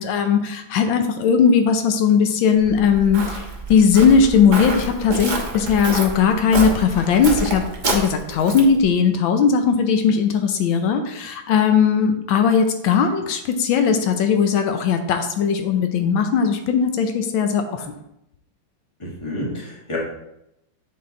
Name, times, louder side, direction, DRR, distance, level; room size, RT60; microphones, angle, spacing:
voice 1, 0.0-17.9, left 6 dB, 85° left, 6 dB, 1.5 m, -18 dB
Walk footsteps, 2.6-8.8, right 2 dB, 35° right, 0.8 m, -28 dB
voice 2, 19.0-20.0, left 1 dB, 15° left, -4 dB, 1.6 m, -29 dB
8.1 x 3.8 x 3.8 m, 0.82 s
omnidirectional pair, 2.1 m